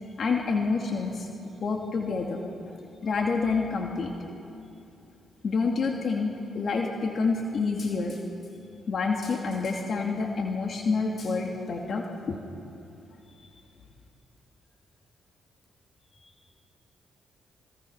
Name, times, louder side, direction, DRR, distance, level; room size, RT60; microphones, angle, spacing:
voice 1, 0.2-1.3 1.6-2.4 3.0-4.1 5.4-8.2 8.9-12.4, left 4 dB, 60° left, 1 dB, 2.5 m, -28 dB
voice 2, 16.1-16.6, left 2 dB, 45° left, 0 dB, 7.1 m, -60 dB
26.5 x 24.5 x 6.0 m, 2.7 s
supercardioid pair, 55°, 0 cm